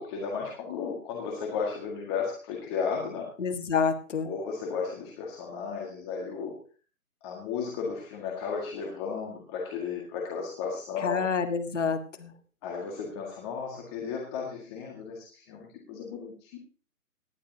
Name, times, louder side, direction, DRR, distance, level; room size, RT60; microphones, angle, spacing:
voice 1, 0.0-3.3 4.2-6.6 7.2-11.3 12.6-16.6, left 5 dB, 20° left, -2 dB, 1.9 m, -34 dB
voice 2, 3.4-4.3 11.0-12.3, left 5 dB, 55° left, 8 dB, 1.7 m, -28 dB
19.0 x 11.0 x 2.8 m, 0.38 s
figure-of-eight pair, 150°, 44 cm